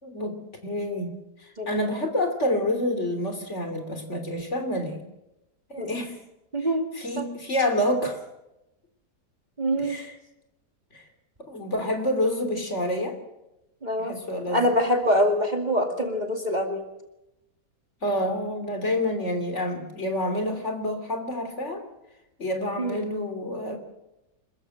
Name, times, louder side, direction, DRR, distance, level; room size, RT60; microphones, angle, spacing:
voice 1, 0.0-5.0 5.7-6.2 6.9-8.2 9.8-10.1 10.9-11.0 11.5-13.2 14.1-14.6 18.0-21.8 22.4-23.8, left 1 dB, 40° left, 6 dB, 3.3 m, -28 dB
voice 2, 6.5-6.9 7.2-7.3 9.6-10.0 13.8-14.2 14.5-16.9 22.8-23.1, equal, 25° right, 4 dB, 2.3 m, -25 dB
26.5 x 14.5 x 7.8 m, 0.91 s
omnidirectional pair, 1.8 m